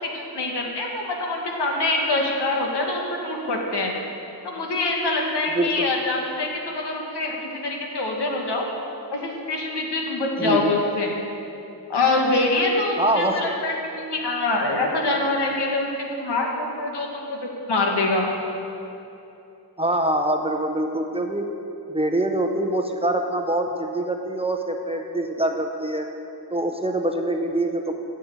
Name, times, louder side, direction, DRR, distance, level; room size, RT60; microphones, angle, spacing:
voice 1, 0.0-3.9 4.4-8.7 9.1-11.1 11.9-18.3, left 2 dB, 90° left, 0 dB, 1.6 m, -25 dB
voice 2, 5.5-5.9 10.4-10.7 13.0-13.4 19.8-21.5 21.9-26.1 26.5-27.9, right 1 dB, 15° right, 3 dB, 0.7 m, -24 dB
7.7 x 6.9 x 8.3 m, 2.8 s
wide cardioid pair, 110°, 40 cm